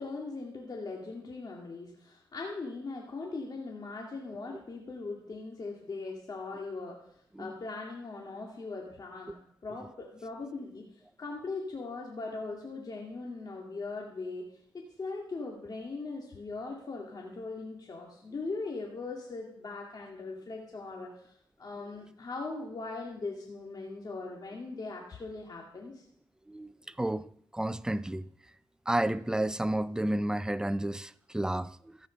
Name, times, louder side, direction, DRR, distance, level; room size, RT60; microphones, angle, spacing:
voice 1, 0.0-7.0 7.4-9.3 9.6-10.8 11.2-14.4 14.7-21.3 21.6-26.0, left 3 dB, 50° left, 2.4 m, -40 dB
voice 2, 27.0-27.3 27.5-28.3 28.9-32.0, right 1 dB, 10° right, 0.5 m, -31 dB
14.5 x 9.3 x 5.3 m
cardioid pair, 70°, 9 cm